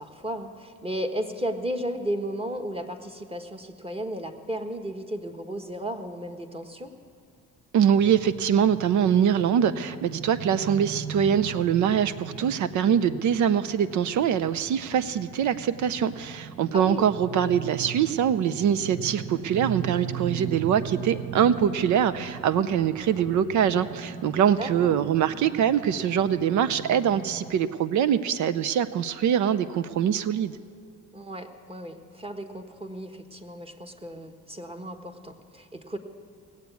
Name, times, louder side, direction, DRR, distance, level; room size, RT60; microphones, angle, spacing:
voice 1, 0.0-6.9 16.7-17.1 24.3-24.9 31.1-36.0, right 1 dB, 20° right, 5 dB, 1.4 m, -34 dB
voice 2, 7.7-30.6, right 8 dB, 75° right, 14 dB, 0.6 m, -23 dB
sound 1, 7.9-27.5, right 8 dB, 50° right, 1.1 m, -39 dB
19.0 x 8.2 x 8.3 m, 2.4 s
cardioid pair, 90°, 30 cm